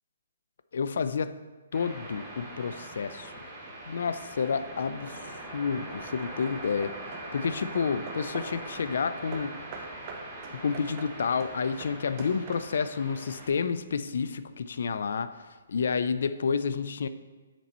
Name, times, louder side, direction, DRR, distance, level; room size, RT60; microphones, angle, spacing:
voice 1, 0.7-1.4 1.7-3.3 3.9-9.6 10.5-17.1, left 5 dB, 65° left, 13 dB, 0.3 m, -30 dB
sound 1, 1.7-13.5, right 1 dB, 10° right, 1.1 m, -42 dB
Hammer / Wood, 5.1-5.6 6.2-8.7 9.3-13.0, right 4 dB, 30° right, 0.6 m, -45 dB
6.0 x 4.1 x 4.3 m, 1.3 s
hypercardioid pair, 160°, 0 cm